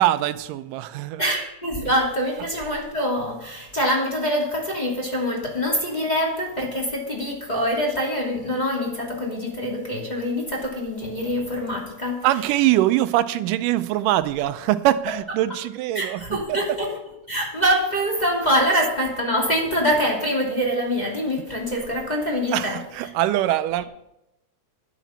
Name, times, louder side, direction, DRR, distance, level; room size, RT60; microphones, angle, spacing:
voice 1, 0.0-1.2 12.2-16.8 22.5-23.9, right 14 dB, 85° right, 2.2 m, -23 dB
voice 2, 1.2-12.3 15.9-16.9 17.3-22.8, equal, 15° left, 2.4 m, -24 dB
12.5 x 10.0 x 5.7 m
omnidirectional pair, 3.7 m